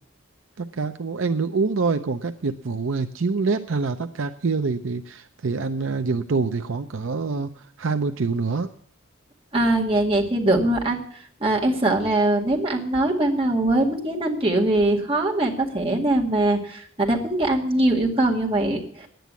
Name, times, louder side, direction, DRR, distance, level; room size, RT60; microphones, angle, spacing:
voice 1, 0.6-8.7, right 4 dB, 65° right, 7 dB, 0.6 m, -26 dB
voice 2, 9.5-11.0 11.4-19.1, right 1 dB, 25° right, -1 dB, 2.1 m, -22 dB
10.5 x 9.2 x 8.2 m, 0.62 s
head